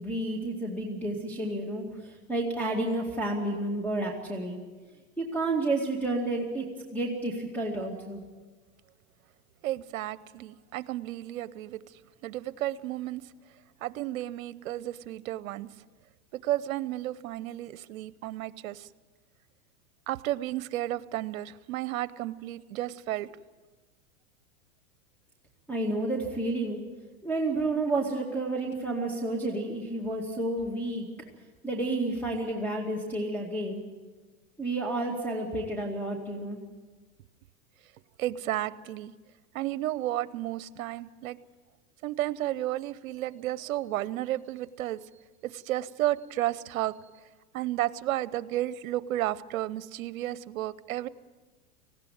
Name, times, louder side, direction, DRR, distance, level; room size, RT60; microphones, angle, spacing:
voice 1, 0.0-4.6 5.2-8.2 25.7-26.8 27.2-31.1 31.6-33.8 34.6-36.6, right 2 dB, 5° left, 0 dB, 2.3 m, -30 dB
voice 2, 9.6-13.2 13.8-15.7 16.4-18.9 20.1-23.3 38.2-39.1 39.5-41.4 42.0-45.0 45.4-46.9 47.5-51.1, right 14 dB, 70° right, 17 dB, 0.9 m, -32 dB
19.0 x 15.5 x 9.3 m, 1.3 s
hypercardioid pair, 120°, 43 cm